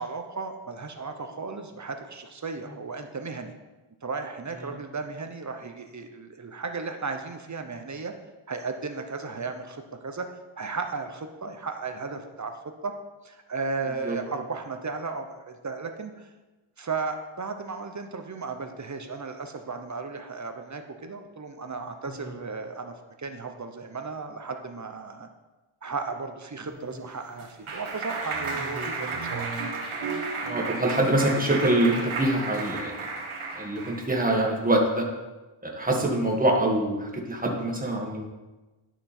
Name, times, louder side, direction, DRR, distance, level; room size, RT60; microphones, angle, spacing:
voice 1, 0.0-3.6 4.0-8.1 8.5-10.3 10.6-12.9 13.2-16.3 16.8-25.3 25.8-29.6, right 4 dB, 35° right, 6 dB, 0.9 m, -35 dB
Clapping, 26.8-34.1, right 4 dB, 80° right, 1.6 m, -33 dB
voice 2, 28.8-29.1 30.4-33.0 33.5-35.0 35.6-38.2, right 1 dB, 15° right, 0 dB, 1.7 m, -25 dB
11.5 x 6.0 x 4.4 m, 1.1 s
wide cardioid pair, 130°, 50 cm